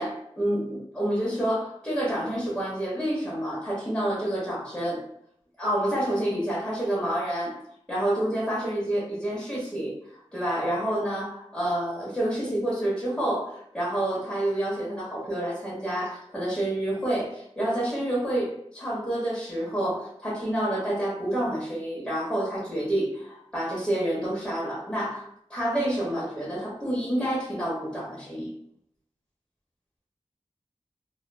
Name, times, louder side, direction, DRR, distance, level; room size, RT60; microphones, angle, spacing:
voice 1, 0.0-5.0 5.6-7.6 7.9-9.9 10.3-28.5, right 1 dB, 5° left, -6 dB, 0.9 m, -28 dB
2.3 x 2.2 x 2.5 m, 0.70 s
wide cardioid pair, 55°, 12 cm